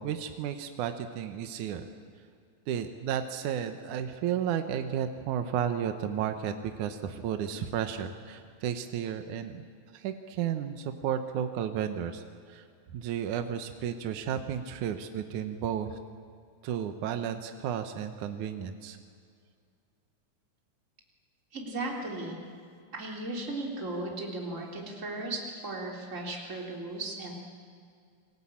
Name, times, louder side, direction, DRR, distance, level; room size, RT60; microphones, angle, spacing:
voice 1, 0.0-1.9 2.7-9.7 9.9-12.7 12.9-16.0 16.6-19.0, right 9 dB, 75° right, 8 dB, 2.6 m, -33 dB
voice 2, 21.5-22.4 22.9-27.3, right 2 dB, 25° right, 0 dB, 3.9 m, -36 dB
28.5 x 21.5 x 8.7 m, 2.3 s
omnidirectional pair, 3.6 m